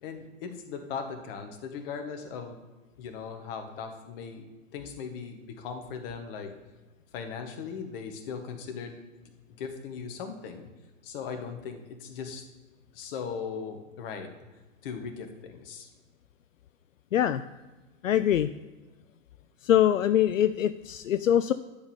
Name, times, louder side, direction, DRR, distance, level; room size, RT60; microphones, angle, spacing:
voice 1, 0.0-2.6 3.0-4.4 4.7-6.5 7.1-9.0 9.6-10.7 11.0-12.4 12.9-14.3 14.8-15.9, left 6 dB, 45° left, 5 dB, 1.8 m, -38 dB
voice 2, 18.0-18.5 19.6-21.5, left 10 dB, 75° left, 12 dB, 0.6 m, -23 dB
11.5 x 5.4 x 7.2 m, 1.2 s
hypercardioid pair, 120°, 39 cm